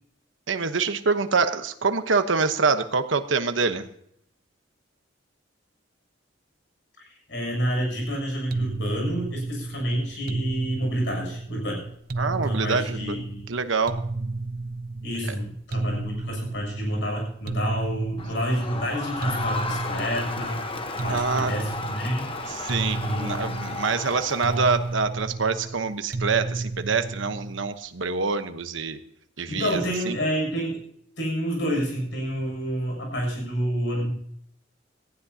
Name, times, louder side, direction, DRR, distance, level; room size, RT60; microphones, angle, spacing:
voice 1, 0.5-3.9 12.2-14.0 21.1-21.5 22.5-29.0 29.4-30.2, right 4 dB, 80° right, 9 dB, 1.0 m, -26 dB
voice 2, 7.0-11.9 12.4-13.4 15.0-20.7 21.0-22.3 23.0-23.6 29.5-30.8 31.2-34.1, equal, 65° left, 1 dB, 6.9 m, -29 dB
sound 1, 8.5-27.8, right 2 dB, 50° right, 0.7 m, -32 dB
Crowd, 18.2-25.0, left 3 dB, 30° left, 1.0 m, -33 dB
18.0 x 15.0 x 2.8 m, 0.69 s
head